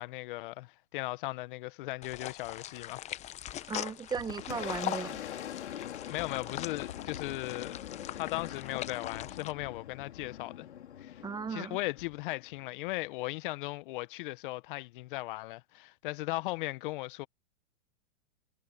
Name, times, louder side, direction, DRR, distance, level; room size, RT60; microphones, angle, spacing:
voice 1, 0.0-3.1 6.1-7.8 8.1-10.7 11.0-11.2 11.5-17.3, left 20 dB, 50° left, 1.1 m, -37 dB
sound 1, 2.0-9.5, left 12 dB, 20° left, 0.8 m, -41 dB
Boom, 3.6-13.0, left 10 dB, 80° left, 3.7 m, -44 dB
voice 2, 3.7-5.2 11.2-11.8, right 5 dB, 10° right, 1.0 m, -36 dB
hypercardioid pair, 135°, 34 cm